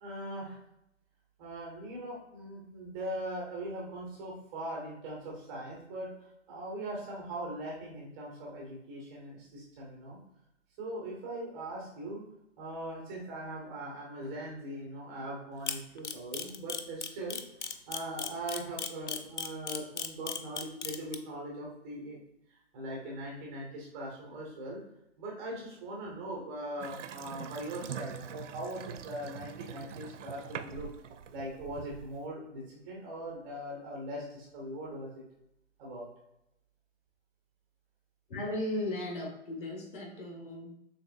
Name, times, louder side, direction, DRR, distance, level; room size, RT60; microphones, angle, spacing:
voice 1, 0.0-0.6 1.4-10.2 10.8-12.2 12.6-17.4 17.9-22.2 22.5-24.8 25.2-30.9 31.3-35.2 35.8-36.1, right 1 dB, 5° right, -2 dB, 0.4 m, -40 dB
Camera, 15.7-21.1, left 7 dB, 65° left, 0.6 m, -35 dB
Water tap faucet / Sink (filling or washing) / Bathtub (filling or washing), 26.8-32.3, right 8 dB, 75° right, 0.5 m, -44 dB
voice 2, 38.3-40.7, left 1 dB, 40° left, 0 dB, 1.6 m, -36 dB
6.8 x 2.8 x 2.5 m, 0.84 s
figure-of-eight pair, 125°, 37 cm